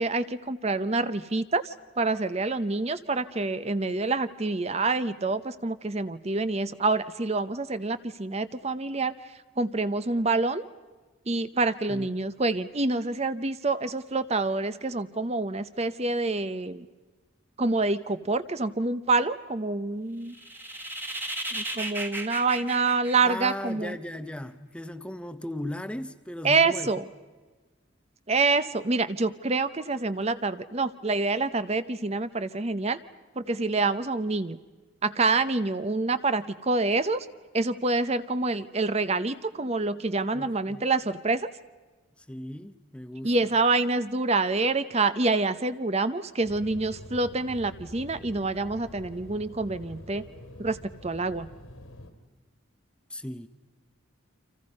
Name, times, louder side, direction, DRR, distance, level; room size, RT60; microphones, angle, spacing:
voice 1, 0.0-9.1 9.6-10.6 11.3-16.9 17.6-20.3 21.5-24.0 26.4-27.0 28.3-33.0 33.4-34.6 35.0-37.3 37.5-41.5 43.2-50.2 50.6-50.8 51.0-51.5, right 3 dB, 30° right, 0.7 m, -27 dB
voice 2, 11.9-12.2 23.2-26.9 40.3-40.9 42.2-43.3 53.1-53.5, left 1 dB, 5° left, 0.7 m, -37 dB
sound 1, 20.3-23.9, right 1 dB, 10° right, 1.6 m, -35 dB
sound 2, 46.4-52.1, left 1 dB, 90° left, 3.2 m, -46 dB
30.0 x 26.0 x 5.4 m
head